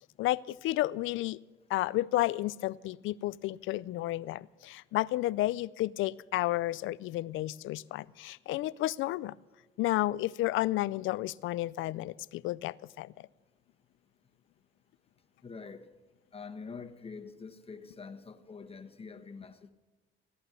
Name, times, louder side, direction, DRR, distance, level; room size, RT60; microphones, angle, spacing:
voice 1, 0.2-1.4 1.7-9.4 9.8-13.1, left 16 dB, 90° left, 0.5 m, -32 dB
voice 2, 15.4-15.8 16.3-19.7, left 5 dB, 30° left, 1.4 m, -45 dB
17.0 x 11.5 x 6.8 m
cardioid pair, 90°, 20 cm